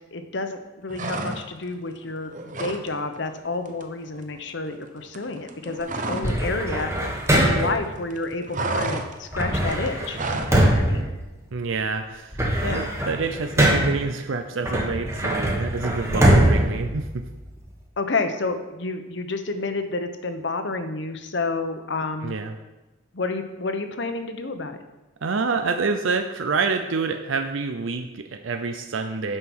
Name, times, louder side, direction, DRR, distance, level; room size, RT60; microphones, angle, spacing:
voice 1, 0.1-6.9 7.3-10.2 10.5-11.1 12.6-12.9 18.0-22.3 23.1-24.8, left 3 dB, 60° left, 7 dB, 0.9 m, -29 dB
sound 1, 0.9-1.7 2.0-2.9 3.1-3.4 3.7-6.4 6.7-7.8 8.0-10.6, right 2 dB, 40° right, 0.8 m, -31 dB
sound 2, 6.2-7.9 9.3-11.8 12.1-14.1 14.6-17.7, right 1 dB, 15° right, 1.3 m, -22 dB
voice 2, 11.5-17.3 22.2-22.6 25.2-29.4, right 4 dB, 75° right, 6 dB, 0.6 m, -27 dB
9.1 x 5.6 x 6.1 m, 1.1 s
head